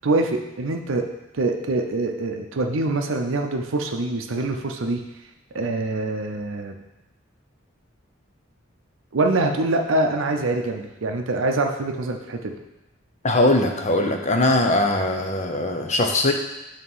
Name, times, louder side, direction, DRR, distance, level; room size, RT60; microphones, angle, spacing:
voice 1, 0.0-1.0 1.3-5.0 5.5-6.7 9.1-12.6, right 2 dB, 75° right, 3 dB, 0.6 m, -24 dB
voice 2, 13.2-16.3, left 2 dB, 35° left, 3 dB, 0.7 m, -20 dB
8.5 x 2.9 x 5.5 m, 1.0 s
head